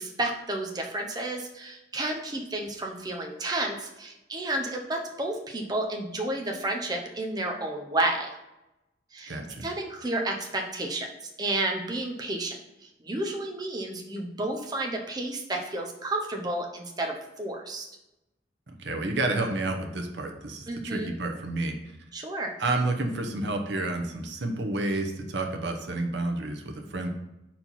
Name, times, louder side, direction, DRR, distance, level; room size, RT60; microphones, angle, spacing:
voice 1, 0.0-8.3 9.1-17.9 20.7-21.1 22.1-22.5, right 2 dB, 20° right, 1 dB, 0.7 m, -31 dB
voice 2, 9.3-9.7 18.7-21.7 22.6-27.1, right 2 dB, 65° right, 4 dB, 0.8 m, -30 dB
4.4 x 4.3 x 5.6 m, 0.94 s
head